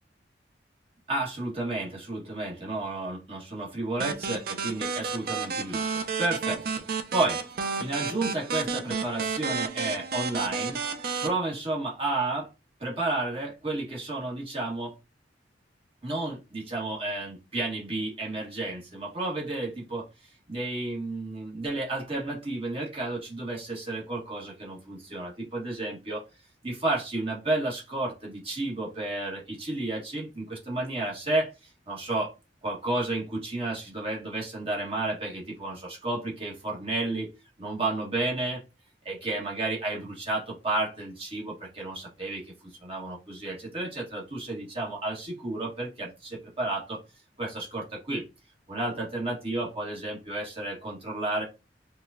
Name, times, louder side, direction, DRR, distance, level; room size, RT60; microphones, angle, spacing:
voice 1, 1.1-6.8 7.1-10.8 11.2-12.5 12.8-15.0 16.0-20.1 20.5-26.2 26.6-32.3 32.6-37.3 37.6-38.6 39.0-47.0 47.4-48.2 48.7-51.4, right 2 dB, 30° right, -3 dB, 1.3 m, -32 dB
sound 1, 4.0-11.3, right 5 dB, 55° right, 0.4 m, -31 dB
4.8 x 2.2 x 2.5 m, 0.28 s
head